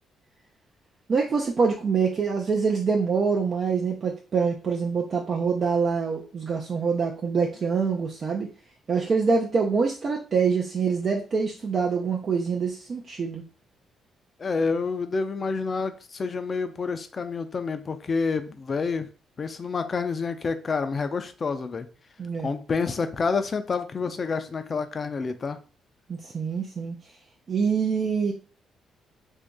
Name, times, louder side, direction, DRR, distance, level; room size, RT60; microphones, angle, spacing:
voice 1, 1.1-8.5 8.9-13.4 22.2-22.5 26.1-27.0 27.5-28.3, right 5 dB, 45° right, 0 dB, 0.5 m, -25 dB
voice 2, 14.4-19.1 19.4-21.9 22.4-25.6, left 4 dB, 40° left, 9 dB, 0.5 m, -28 dB
2.9 x 2.7 x 3.5 m, 0.36 s
cardioid pair, 90°, 0 cm